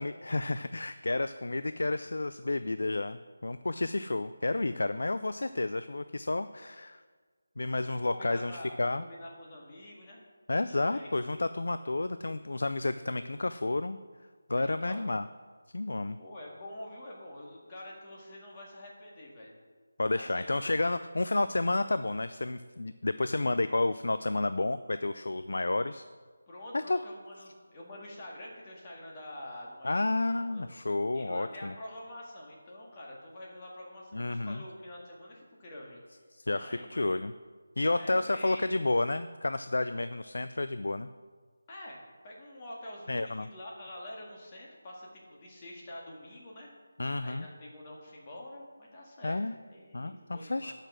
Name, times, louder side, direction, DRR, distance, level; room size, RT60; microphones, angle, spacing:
voice 1, 0.0-7.0 7.6-9.0 10.5-14.0 14.5-15.2 15.7-16.2 20.0-26.0 26.7-27.0 29.8-31.7 34.1-34.6 36.3-37.3 37.8-41.1 43.1-43.5 47.0-47.5 49.2-49.6 49.9-50.7, left 2 dB, 70° left, 11 dB, 0.4 m, -31 dB
voice 2, 8.0-10.2 10.7-11.1 14.6-15.0 16.2-19.5 20.1-20.5 26.5-30.7 31.1-36.0 36.6-36.9 37.9-38.7 41.7-46.7 47.2-49.4 49.7-50.7, left 1 dB, 20° left, -3 dB, 2.0 m, -46 dB
9.7 x 6.5 x 6.2 m, 1.5 s
figure-of-eight pair, 170°, 0 cm